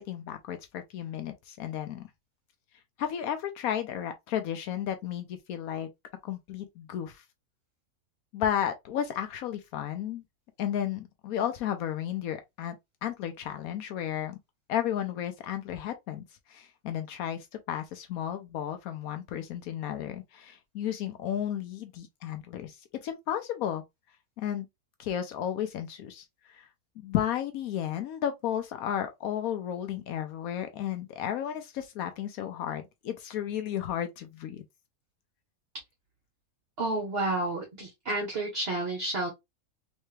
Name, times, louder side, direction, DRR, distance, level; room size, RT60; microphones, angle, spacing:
voice 1, 0.0-2.1 3.0-5.9 6.2-7.2 8.3-10.2 10.6-12.8 13.0-14.4 14.7-23.8 24.4-24.7 25.0-26.7 27.0-34.6, left 10 dB, 80° left, 1.0 m, -33 dB
voice 2, 36.8-39.3, right 2 dB, 45° right, 1.1 m, -30 dB
3.3 x 3.2 x 3.1 m
omnidirectional pair, 1.5 m